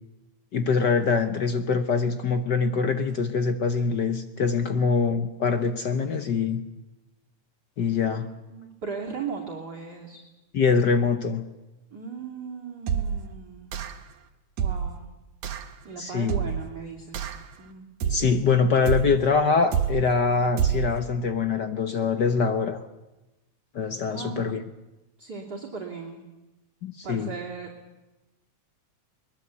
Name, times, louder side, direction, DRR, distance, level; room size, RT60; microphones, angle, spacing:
voice 1, 0.5-6.6 7.8-8.3 10.5-11.5 16.0-16.3 18.0-22.8 23.7-24.6 26.8-27.3, left 5 dB, 65° left, 9 dB, 1.1 m, -24 dB
voice 2, 8.2-10.2 11.9-13.7 14.6-15.0 15.8-17.2 17.6-17.8 24.1-24.6 25.2-26.2 27.0-27.7, right 5 dB, 35° right, -1 dB, 3.3 m, -37 dB
sound 1, 12.9-13.3 13.7-14.1 14.6-15.0 15.4-15.7 16.3-16.7 17.1-17.5 18.0-18.4 18.9-19.3 19.7-20.1 20.6-21.0, right 7 dB, 80° right, 2.8 m, -27 dB
22.5 x 21.5 x 8.3 m, 1.0 s
omnidirectional pair, 3.3 m